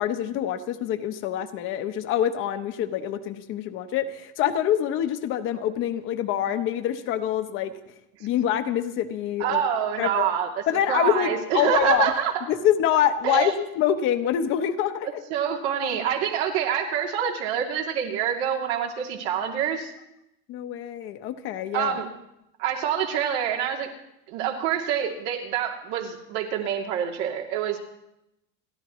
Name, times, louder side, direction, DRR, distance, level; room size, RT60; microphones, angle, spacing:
voice 1, 0.0-7.7 8.2-9.6 10.0-10.3 10.7-12.1 12.5-15.2 20.5-22.0, left 10 dB, 40° left, 9 dB, 0.8 m, -25 dB
voice 2, 9.4-10.5 10.9-12.3 13.2-13.5 15.3-19.9 21.7-22.1 22.6-23.9 24.3-27.8, right 9 dB, 80° right, 0 dB, 2.8 m, -26 dB
29.5 x 12.0 x 3.1 m, 0.85 s
cardioid pair, 175°, 33 cm